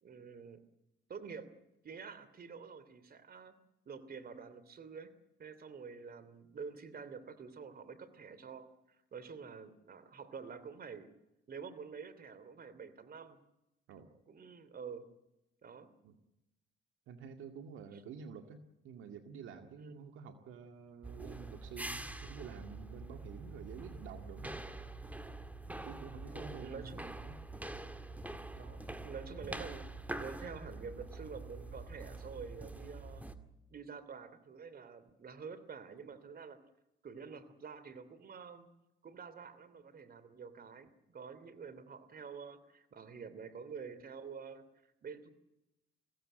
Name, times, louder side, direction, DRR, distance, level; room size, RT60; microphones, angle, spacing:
voice 1, 0.0-0.6 1.1-1.5 1.8-3.6 3.8-5.1 5.4-11.1 11.5-13.4 14.3-15.1 15.6-15.9 17.9-18.0 19.8-20.0 25.7-26.0 26.6-27.1 28.5-29.8 30.2-33.2 33.7-36.6 37.0-38.7 39.0-44.6 45.0-45.3, right 5 dB, 50° right, 13 dB, 3.0 m, -48 dB
voice 2, 17.1-24.5 25.8-27.4, right 6 dB, 85° right, 6 dB, 2.1 m, -49 dB
sound 1, 21.0-33.3, right 2 dB, 10° right, 2.1 m, -45 dB
22.5 x 16.5 x 9.0 m, 0.90 s
cardioid pair, 90°, 20 cm